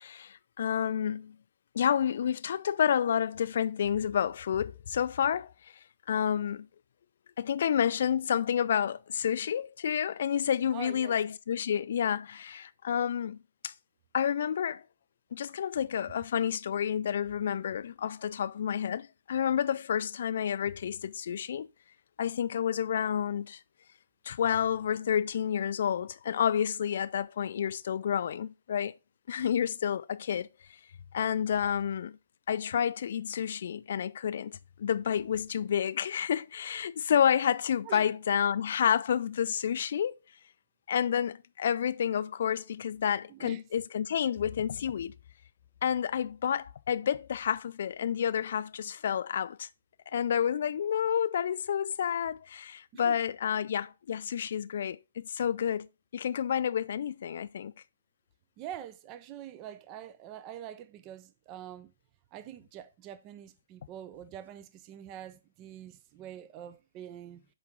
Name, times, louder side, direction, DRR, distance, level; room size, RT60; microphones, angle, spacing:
voice 1, 0.0-1.4 1.7-5.5 6.1-6.7 7.4-13.4 13.6-13.7 14.1-14.8 15.3-21.7 22.2-23.6 24.3-28.9 29.3-30.5 31.1-32.2 32.5-40.2 40.9-45.1 45.8-49.7 50.1-55.9 56.1-57.7, left 8 dB, 55° left, 0.3 m, -29 dB
voice 2, 10.7-11.2 37.8-38.1 43.3-43.6 52.9-53.2 58.6-61.9 62.3-67.5, right 11 dB, 25° right, 0.4 m, -45 dB
8.2 x 3.5 x 3.5 m
figure-of-eight pair, 130°, 0 cm